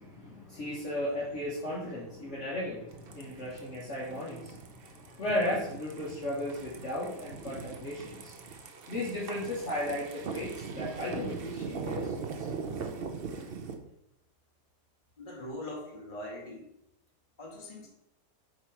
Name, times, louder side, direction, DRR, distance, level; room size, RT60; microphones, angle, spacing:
voice 1, 0.0-8.4 8.9-12.5, left 1 dB, 45° left, -7 dB, 1.4 m, -35 dB
Bike On Concrete OS, 2.9-13.7, right 5 dB, 60° right, 0.6 m, -40 dB
voice 2, 15.2-16.7 17.4-17.9, left 1 dB, 30° left, -2 dB, 1.6 m, -41 dB
7.4 x 3.0 x 4.6 m, 0.80 s
omnidirectional pair, 1.8 m